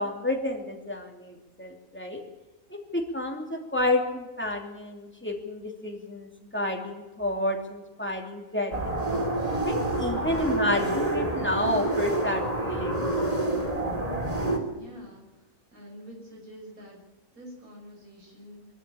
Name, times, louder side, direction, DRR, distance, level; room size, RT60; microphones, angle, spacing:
voice 1, 0.0-2.2 2.7-9.3 9.6-13.0, left 1 dB, 10° left, 2 dB, 3.0 m, -30 dB
sound 1, 8.7-14.6, right 2 dB, 25° right, 3.0 m, -28 dB
voice 2, 14.7-15.2 15.7-17.0 17.3-18.7, equal, 90° right, -1 dB, 6.3 m, -46 dB
23.5 x 13.5 x 8.8 m, 1.1 s
omnidirectional pair, 1.5 m